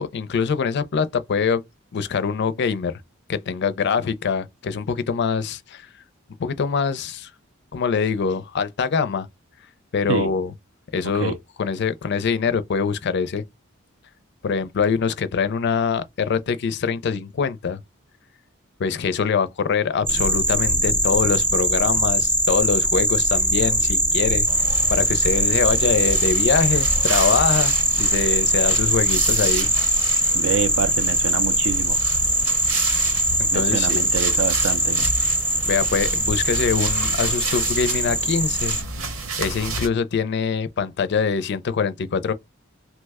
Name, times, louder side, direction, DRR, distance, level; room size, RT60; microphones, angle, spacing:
voice 1, 0.0-1.6 1.9-3.0 3.3-5.9 6.4-7.3 7.7-9.3 9.9-10.5 10.9-13.4 14.4-17.8 18.8-29.7 33.4-34.1 35.7-38.8 39.4-42.3, left 5 dB, 55° left, 0.4 m, -24 dB
sound 1, 20.1-38.8, right 1 dB, 10° right, 0.6 m, -21 dB
sound 2, 24.5-39.9, right 4 dB, 85° right, 0.9 m, -32 dB
voice 2, 30.3-32.0 33.5-35.0, right 7 dB, 65° right, 0.4 m, -26 dB
3.0 x 2.1 x 3.4 m
head